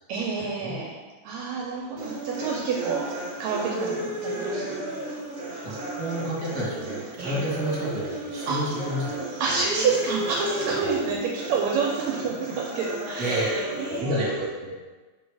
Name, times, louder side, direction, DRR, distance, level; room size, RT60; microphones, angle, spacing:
voice 1, 0.1-1.0 1.2-4.8 5.1-5.3 7.2-7.4 8.5-8.6 9.4-14.4, right 5 dB, 75° right, -2 dB, 1.9 m, -29 dB
sound 1, 2.0-14.0, right 1 dB, 15° right, 1.2 m, -33 dB
voice 2, 5.6-9.7 10.8-11.2 13.2-13.5 13.9-14.8, right 1 dB, 35° right, -5 dB, 1.8 m, -30 dB
6.8 x 3.1 x 4.7 m, 1.3 s
omnidirectional pair, 3.5 m